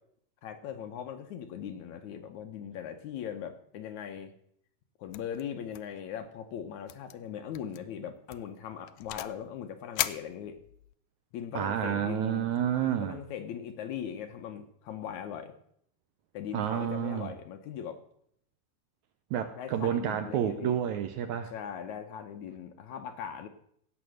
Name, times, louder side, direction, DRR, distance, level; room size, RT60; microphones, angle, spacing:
voice 1, 0.4-4.3 5.0-10.6 11.3-12.5 12.8-15.5 16.3-18.0 19.6-20.8 21.5-23.5, left 8 dB, 70° left, 7 dB, 1.9 m, -40 dB
sound 1, 5.1-5.4 5.7-6.0 6.2-6.3 6.9-7.1 7.5-7.8 8.3-9.4 10.0-10.9, left 15 dB, 85° left, 1.6 m, -36 dB
voice 2, 11.5-13.2 16.5-17.3 19.3-21.5, right 10 dB, 75° right, 9 dB, 1.8 m, -30 dB
17.5 x 7.2 x 6.4 m, 0.69 s
omnidirectional pair, 4.0 m